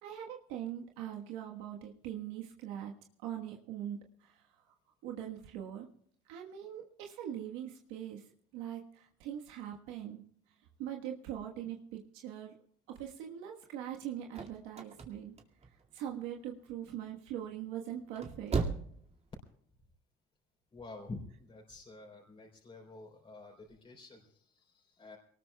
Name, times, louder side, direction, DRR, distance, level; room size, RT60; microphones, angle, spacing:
voice 1, 0.0-2.9 3.2-4.5 5.0-5.9 6.3-8.2 8.5-10.2 10.8-12.5 12.9-15.3 15.9-18.6, right 10 dB, 85° right, 1 dB, 1.4 m, -42 dB
sound 1, 14.0-16.2 16.6-17.1 17.9-19.0 19.3-19.4, right 4 dB, 35° right, 2.2 m, -36 dB
voice 2, 20.7-25.2, left 2 dB, 30° left, 0 dB, 3.8 m, -49 dB
23.0 x 19.0 x 2.3 m, 0.65 s
supercardioid pair, 80°, 19 cm